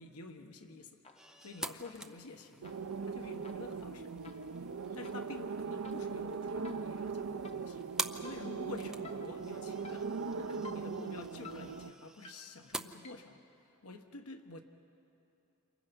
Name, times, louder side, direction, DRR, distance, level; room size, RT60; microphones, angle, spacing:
voice 1, 0.0-4.1 4.9-14.6, left 3 dB, 85° left, 5 dB, 1.3 m, -49 dB
sound 1, 1.0-1.5 1.8-13.5, left 3 dB, 30° left, 1.1 m, -56 dB
sound 2, 1.1-12.8, right 1 dB, 5° right, 0.6 m, -47 dB
sound 3, 2.6-11.9, right 5 dB, 70° right, 0.6 m, -40 dB
29.0 x 28.5 x 5.4 m, 2.8 s
head